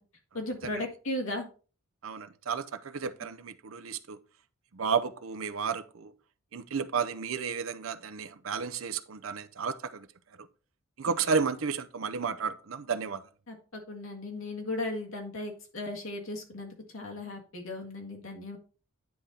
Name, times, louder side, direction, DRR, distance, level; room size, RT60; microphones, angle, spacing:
voice 1, 0.3-1.5 13.5-18.6, left 2 dB, 75° left, 1.8 m, -36 dB
voice 2, 2.0-4.2 4.7-6.1 6.5-10.1 10.4-10.5 11.0-13.3, right 5 dB, 75° right, 0.6 m, -32 dB
9.5 x 3.9 x 4.2 m
head